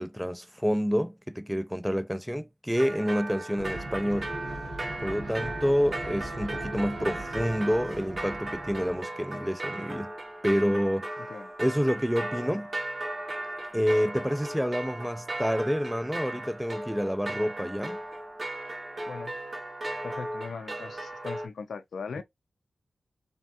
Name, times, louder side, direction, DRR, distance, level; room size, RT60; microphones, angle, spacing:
voice 1, 0.0-4.3 5.0-10.1 10.4-11.1 11.6-12.7 13.7-18.0, equal, 5° right, 0.4 m, -28 dB
sound 1, 2.7-21.5, right 1 dB, 40° right, 0.7 m, -37 dB
sound 2, 3.6-9.0, right 1 dB, 70° right, 1.4 m, -39 dB
voice 2, 20.0-22.2, left 5 dB, 85° left, 0.3 m, -39 dB
3.3 x 2.3 x 2.5 m
cardioid pair, 60°, 0 cm